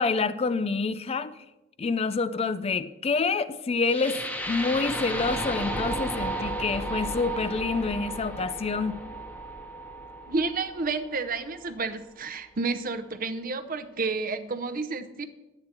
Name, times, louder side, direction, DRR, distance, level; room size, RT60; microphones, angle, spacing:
voice 1, 0.0-1.3 1.8-4.2 4.5-9.0, left 4 dB, 30° left, 15 dB, 0.4 m, -27 dB
sound 1, 3.9-11.9, right 1 dB, 5° left, 0.9 m, -34 dB
voice 2, 10.3-15.3, right 4 dB, 45° right, 11 dB, 0.7 m, -30 dB
11.5 x 8.7 x 4.4 m, 1.1 s
head